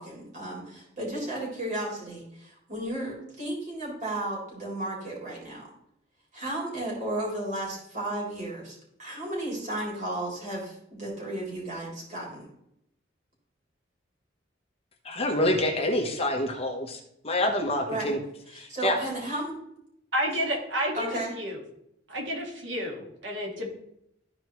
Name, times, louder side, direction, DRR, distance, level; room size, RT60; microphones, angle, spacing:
voice 1, 0.0-5.7 6.3-12.5 17.9-18.2 18.5-19.6 20.9-21.3, right 1 dB, 40° right, -4 dB, 3.4 m, -34 dB
voice 2, 15.0-17.0 17.2-18.2 18.5-19.0, left 1 dB, 30° left, 2 dB, 1.1 m, -26 dB
voice 3, 20.1-21.1 21.4-21.6 22.1-23.7, equal, 75° right, -1 dB, 1.9 m, -30 dB
14.0 x 4.7 x 3.1 m, 0.78 s
head